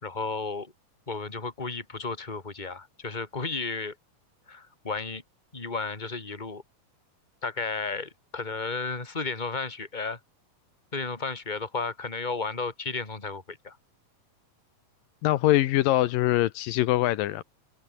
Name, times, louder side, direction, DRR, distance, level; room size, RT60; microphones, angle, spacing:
voice 1, 0.0-0.7 1.1-3.9 4.5-5.2 5.5-6.6 7.4-10.2 10.9-13.8, left 4 dB, 15° left, 3.1 m, -33 dB
voice 2, 15.2-17.4, left 15 dB, 80° left, 2.5 m, -23 dB
omnidirectional pair, 4.0 m